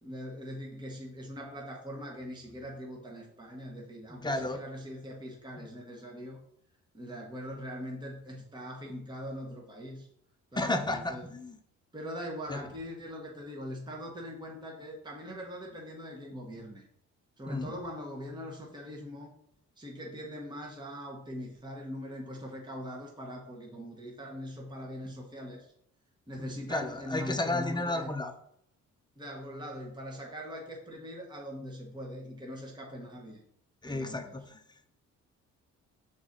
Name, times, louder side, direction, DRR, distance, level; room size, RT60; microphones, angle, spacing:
voice 1, 0.0-6.4 6.9-10.1 10.5-11.2 11.9-16.8 17.4-19.3 19.8-25.7 26.3-28.1 29.2-33.4 33.8-34.4, equal, 15° right, -1 dB, 1.3 m, -41 dB
voice 2, 4.2-4.6 10.5-11.6 12.5-12.6 17.5-17.7 26.4-28.3 33.8-34.9, left 2 dB, 15° left, 6 dB, 0.8 m, -33 dB
6.0 x 4.1 x 3.9 m, 0.67 s
cardioid pair, 90°, 30 cm